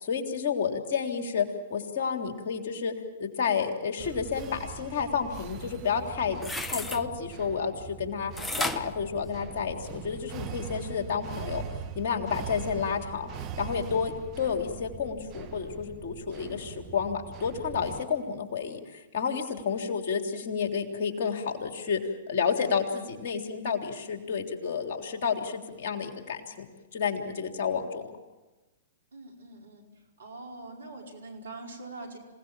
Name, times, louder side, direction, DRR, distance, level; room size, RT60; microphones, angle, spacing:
voice 1, 0.0-2.9 3.2-11.6 11.9-13.3 13.6-28.1, left 6 dB, 50° left, 4 dB, 3.4 m, -30 dB
sound 1, 4.0-18.0, right 7 dB, 35° right, 1.8 m, -41 dB
sound 2, 6.3-7.0 8.4-9.9 10.4-10.5, left 2 dB, 10° left, 1.1 m, -33 dB
voice 2, 29.1-29.9 30.2-32.2, right 2 dB, 75° right, 1 dB, 5.1 m, -43 dB
27.0 x 18.0 x 7.5 m, 1.2 s
hypercardioid pair, 115°, 0 cm